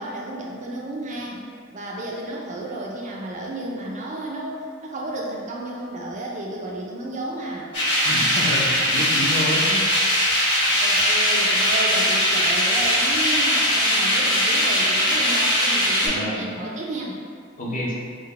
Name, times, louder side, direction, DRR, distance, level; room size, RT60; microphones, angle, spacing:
voice 1, 0.0-1.4 1.7-7.7 10.8-17.2, right 1 dB, 35° right, -2 dB, 0.4 m, -32 dB
sound 1, 7.7-16.1, equal, 55° left, 1.4 m, -20 dB
voice 2, 8.0-9.9 16.0-16.5 17.6-17.9, left 1 dB, 40° left, -4 dB, 0.6 m, -28 dB
3.8 x 2.1 x 3.2 m, 2.3 s
head